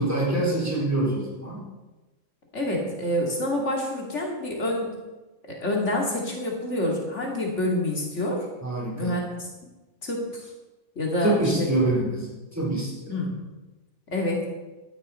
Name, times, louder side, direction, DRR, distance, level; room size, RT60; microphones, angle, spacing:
voice 1, 0.0-1.6 8.6-9.2 11.2-13.1, right 2 dB, 10° right, -3 dB, 3.9 m, -25 dB
voice 2, 2.5-4.9 5.5-8.5 9.0-9.5 10.0-10.5 11.0-11.3 13.1-13.4 14.1-14.5, left 1 dB, 65° left, 0 dB, 2.6 m, -27 dB
16.0 x 11.5 x 4.3 m, 1.1 s
omnidirectional pair, 1.3 m